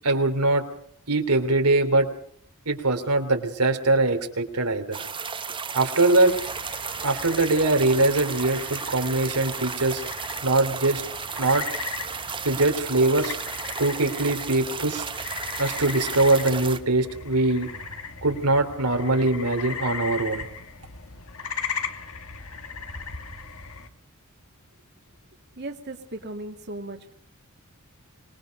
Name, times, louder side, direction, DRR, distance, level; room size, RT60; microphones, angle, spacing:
voice 1, 0.0-0.6 1.1-2.1 2.6-5.0 5.7-6.3 7.0-10.0 10.4-11.0 11.4-11.7 12.4-13.4 13.8-15.1 15.6-17.7 18.2-20.5, right 2 dB, 90° right, 5 dB, 3.2 m, -22 dB
sound 1, 4.9-16.8, right 5 dB, 25° right, 1.4 m, -34 dB
sound 2, 6.3-23.9, left 5 dB, 70° left, 2.3 m, -38 dB
voice 2, 25.6-27.1, right 2 dB, 50° right, 3 dB, 2.3 m, -36 dB
25.5 x 20.5 x 5.3 m, 0.62 s
head